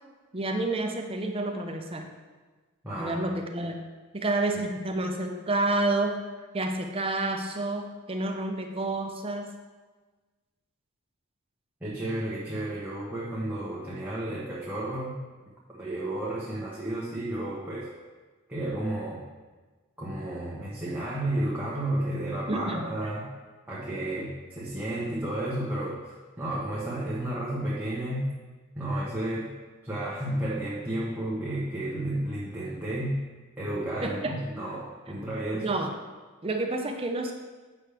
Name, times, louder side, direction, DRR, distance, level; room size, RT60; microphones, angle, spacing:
voice 1, 0.3-2.0 3.0-3.8 4.1-6.2 6.5-9.5 22.5-22.8 34.0-34.3 35.6-36.0 36.4-37.3, right 2 dB, 25° right, 3 dB, 0.6 m, -29 dB
voice 2, 2.8-3.2 11.8-15.2 15.7-17.9 18.5-19.2 20.0-23.3 23.7-28.3 28.8-29.5 29.8-33.2 33.6-35.8, right 1 dB, 10° right, -8 dB, 1.1 m, -32 dB
8.4 x 6.2 x 3.4 m, 1.3 s
head